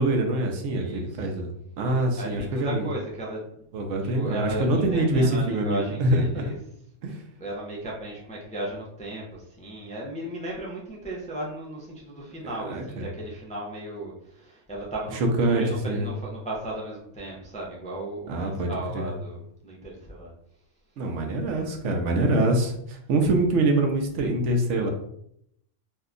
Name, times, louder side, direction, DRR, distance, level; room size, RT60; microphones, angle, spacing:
voice 1, 0.0-1.5 1.8-2.9 3.7-6.4 7.0-7.2 12.4-13.1 15.4-16.1 18.3-19.1 21.0-24.9, right 2 dB, 75° right, 3 dB, 1.0 m, -25 dB
voice 2, 0.7-1.3 2.2-3.7 4.1-6.6 7.4-20.3, right 1 dB, 10° left, -4 dB, 0.3 m, -35 dB
2.7 x 2.2 x 3.7 m, 0.72 s
omnidirectional pair, 1.3 m